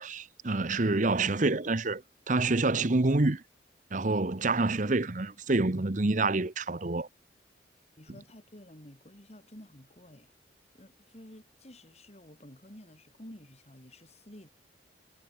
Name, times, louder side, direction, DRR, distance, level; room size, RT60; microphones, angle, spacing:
voice 1, 0.0-2.0 2.3-3.4 3.9-7.1, right 2 dB, 45° right, 1.0 m, -27 dB
voice 2, 8.0-10.3 10.7-14.5, left 1 dB, 35° left, 3.3 m, -51 dB
head